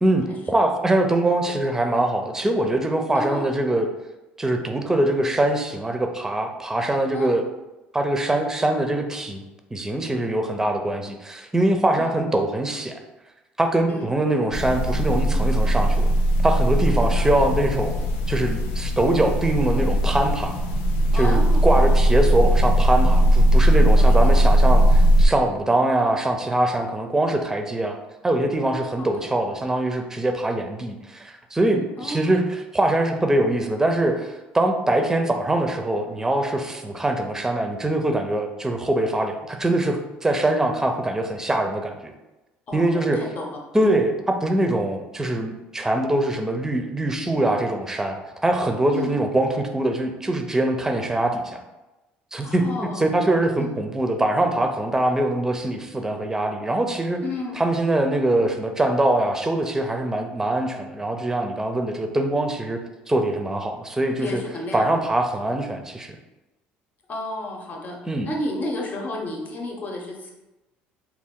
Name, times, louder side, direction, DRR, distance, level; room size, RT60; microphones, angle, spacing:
voice 1, 0.0-3.9 4.4-7.4 7.9-9.4 9.7-13.0 13.6-16.1 16.4-17.9 18.3-20.6 21.1-28.0 28.2-42.1 42.7-43.2 43.7-44.1 44.4-48.2 48.4-51.6 52.3-57.2 57.6-62.8 63.1-64.4 64.7-66.2 68.1-68.3, right 1 dB, 10° right, 5 dB, 0.5 m, -23 dB
sound 1, 14.5-25.3, equal, 85° left, 0.4 m, -18 dB
voice 2, 21.1-21.9 23.9-24.3 29.0-29.3 32.0-32.3 42.7-43.4 43.8-44.0 48.9-49.1 52.4-53.0 53.6-53.7 57.2-57.6 64.2-65.0 67.1-68.0 68.2-70.3, left 2 dB, 40° left, 0 dB, 0.8 m, -32 dB
3.4 x 2.4 x 3.6 m, 1.0 s
supercardioid pair, 90°, 4 cm